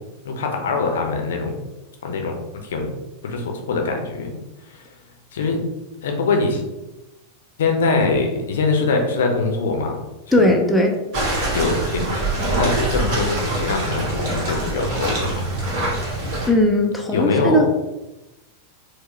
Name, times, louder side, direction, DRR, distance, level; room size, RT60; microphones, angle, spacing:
voice 1, 0.2-1.6 2.0-2.9 3.2-4.3 4.7-4.8 5.3-5.6 6.0-6.6 7.6-10.0 10.3-10.5 11.5-12.1 12.6-15.4 17.1-17.7, left 3 dB, 60° left, 2 dB, 0.6 m, -23 dB
voice 2, 10.3-10.9 16.5-17.7, left 1 dB, 5° left, 0 dB, 0.4 m, -17 dB
sound 1, 11.1-16.5, right 1 dB, 40° right, 1.3 m, -24 dB
4.4 x 2.1 x 3.0 m, 1.0 s
figure-of-eight pair, 90°, 0 cm